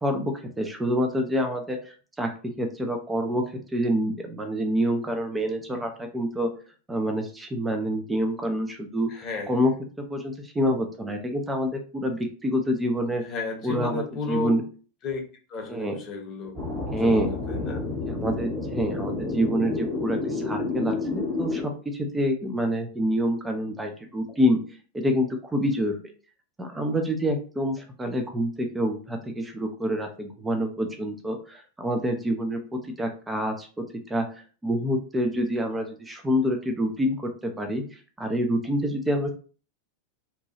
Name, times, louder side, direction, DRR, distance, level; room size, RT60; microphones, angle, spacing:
voice 1, 0.0-2.3 2.6-3.4 3.7-6.5 6.9-9.7 10.0-13.2 13.6-14.0 14.3-14.6 15.7-15.9 16.9-17.3 18.1-24.6 24.9-26.0 26.6-39.3, equal, 10° right, 4 dB, 0.4 m, -27 dB
voice 2, 9.1-9.7 13.2-14.5 15.0-15.2 15.5-16.6 16.9-17.8, left 4 dB, 35° left, 2 dB, 0.8 m, -33 dB
sound 1, 16.6-21.7, left 3 dB, 40° right, 1.1 m, -30 dB
2.7 x 2.2 x 2.8 m, 0.39 s
figure-of-eight pair, 90°, 0 cm